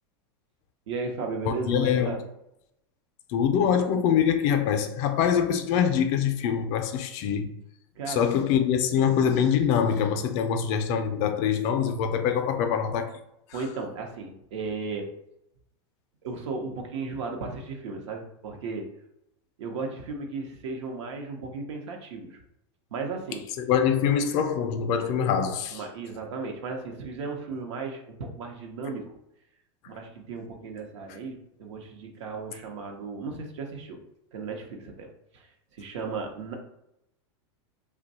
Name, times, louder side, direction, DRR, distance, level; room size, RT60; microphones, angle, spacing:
voice 1, 0.9-2.2 8.0-8.4 8.9-9.1 13.5-15.1 16.2-19.0 19.6-22.4 22.9-23.5 25.7-29.1 29.9-34.0 34.3-35.5 35.7-36.5, right 4 dB, 80° right, 0.8 m, -35 dB
voice 2, 1.5-2.2 3.3-7.5 8.1-13.1 23.6-25.8, left 8 dB, 50° left, 0.5 m, -24 dB
2.6 x 2.2 x 4.0 m
supercardioid pair, 120°, 15 cm